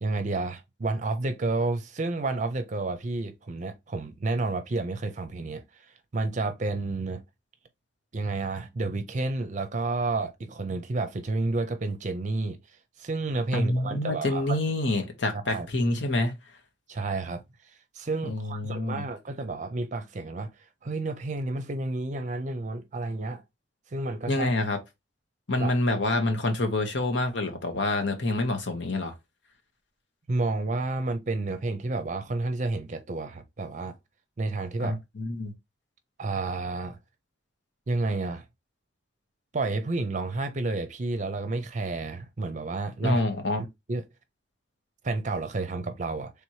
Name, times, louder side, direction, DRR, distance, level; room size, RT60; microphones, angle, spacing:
voice 1, 0.0-5.9 6.1-7.2 8.1-12.6 13.0-14.6 15.5-15.7 16.9-17.4 17.9-20.5 20.8-23.4 23.9-24.5 25.6-25.7 30.3-34.0 34.4-35.0 36.2-37.0 37.9-38.4 39.5-43.2 43.9-44.0 45.0-46.3, right 3 dB, 40° right, 0.5 m, -30 dB
voice 2, 13.5-16.3 18.2-19.0 24.3-24.8 25.5-29.1 34.8-35.5 43.0-43.6, left 2 dB, 85° left, 1.2 m, -27 dB
3.5 x 2.9 x 4.6 m
head